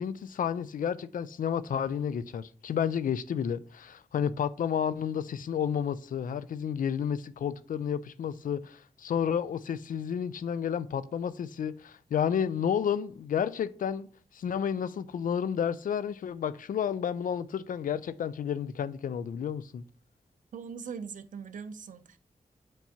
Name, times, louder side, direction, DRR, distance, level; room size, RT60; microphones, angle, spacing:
voice 1, 0.0-14.1 14.3-19.8, left 8 dB, 90° left, 0.4 m, -31 dB
voice 2, 20.5-22.2, right 6 dB, 75° right, 0.6 m, -41 dB
9.0 x 4.5 x 2.8 m
wide cardioid pair, 85°, 14 cm